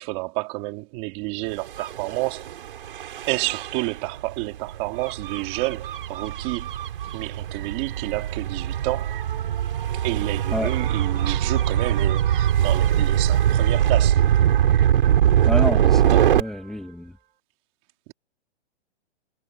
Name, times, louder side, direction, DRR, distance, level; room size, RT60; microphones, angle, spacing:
voice 1, 0.0-2.5 3.3-6.7 7.1-9.2 9.9-14.2 16.1-16.3, right 23 dB, 20° right, 3.1 m, -30 dB
Gull seagull / Waves surf / Siren, 1.7-16.4, right 10 dB, 50° right, 6.0 m, -22 dB
voice 2, 15.5-17.1, left 1 dB, ahead, 2.4 m, -29 dB
hypercardioid pair, 170°, 34 cm